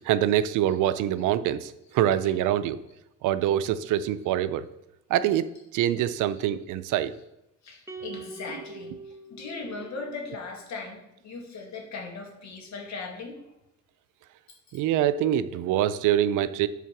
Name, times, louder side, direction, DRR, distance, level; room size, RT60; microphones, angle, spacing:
voice 1, 0.1-2.8 3.2-4.7 5.1-5.5 5.7-7.1 14.7-16.7, right 11 dB, 90° right, 14 dB, 0.5 m, -25 dB
voice 2, 7.6-8.9 9.3-13.4, left 4 dB, 65° left, 1 dB, 2.0 m, -38 dB
sound 1, 7.9-10.3, right 3 dB, 10° right, 0.9 m, -43 dB
8.3 x 4.0 x 5.9 m, 0.87 s
cardioid pair, 90°, 30 cm